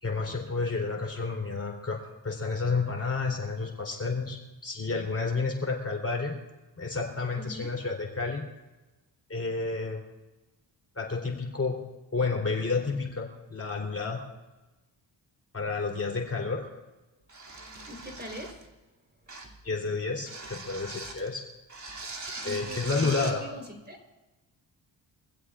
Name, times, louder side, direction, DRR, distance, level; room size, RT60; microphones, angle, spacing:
voice 1, 0.0-6.4 6.8-8.5 9.3-10.0 11.0-14.3 15.5-16.7 19.6-21.4 22.4-23.4, left 4 dB, 30° left, 0 dB, 3.7 m, -30 dB
voice 2, 7.4-7.7 17.9-18.7 22.4-24.0, equal, 20° right, 3 dB, 4.2 m, -42 dB
sound 1, 17.3-18.7 19.3-19.6 20.3-21.3 21.7-23.4, right 3 dB, 40° right, 2.9 m, -40 dB
25.0 x 16.0 x 2.5 m, 1.1 s
cardioid pair, 65°, 47 cm